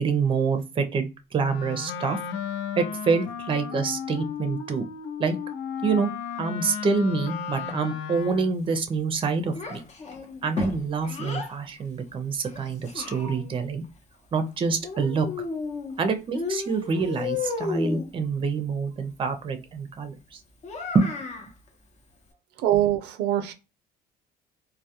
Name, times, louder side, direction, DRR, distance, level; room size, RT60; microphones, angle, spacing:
voice 1, 0.0-2.2 2.8-4.8 5.2-5.4 5.8-6.1 6.4-9.8 10.4-13.8 14.3-15.3 16.0-20.4 20.9-21.1, right 5 dB, 30° right, 0.5 m, -26 dB
Wind instrument woodwind instrument, 1.4-8.6, left 7 dB, 90° left, 0.4 m, -34 dB
Child speech kid speaking, 9.5-11.5 12.4-13.7 14.8-16.0 16.3-18.1 20.6-21.5, left 4 dB, 40° left, 0.7 m, -33 dB
voice 2, 22.6-23.5, right 12 dB, 85° right, 0.4 m, -23 dB
2.2 x 2.1 x 2.7 m
cardioid pair, 110°, 17 cm